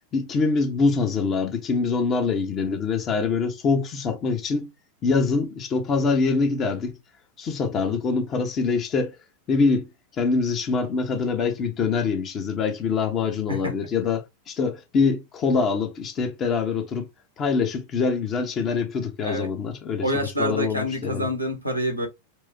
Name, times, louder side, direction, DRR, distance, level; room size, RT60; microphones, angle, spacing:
voice 1, 0.1-4.7 5.0-6.9 7.4-9.2 9.5-9.9 10.2-17.1 17.4-21.3, left 4 dB, 30° left, 0.8 m, -24 dB
voice 2, 20.0-22.1, equal, 90° right, 1.3 m, -27 dB
4.6 x 2.1 x 2.7 m
figure-of-eight pair, 90°, 0 cm